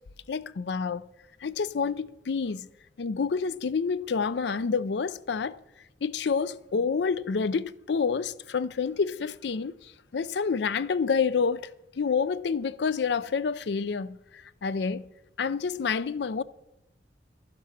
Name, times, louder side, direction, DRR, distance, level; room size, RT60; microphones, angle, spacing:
voice 1, 0.3-1.1 1.4-2.7 3.0-5.6 6.0-9.7 10.1-11.7 12.0-14.2 14.6-15.1 15.4-16.4, left 5 dB, 65° left, 0.5 m, -28 dB
12.0 x 10.5 x 5.9 m
head